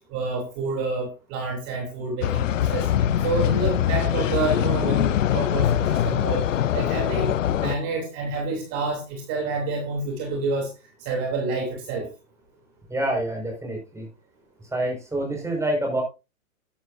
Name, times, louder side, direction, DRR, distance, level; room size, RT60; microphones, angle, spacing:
voice 1, 0.1-2.9 3.2-6.5 6.7-7.3 7.6-10.7 11.0-12.1, right 3 dB, 35° right, 1 dB, 3.5 m, -28 dB
sound 1, 2.2-7.8, left 10 dB, 65° left, 0.8 m, -23 dB
voice 2, 12.9-14.1 14.7-16.0, right 1 dB, 5° right, 1 dB, 5.8 m, -27 dB
13.0 x 11.0 x 2.7 m, 0.29 s
figure-of-eight pair, 110°, 41 cm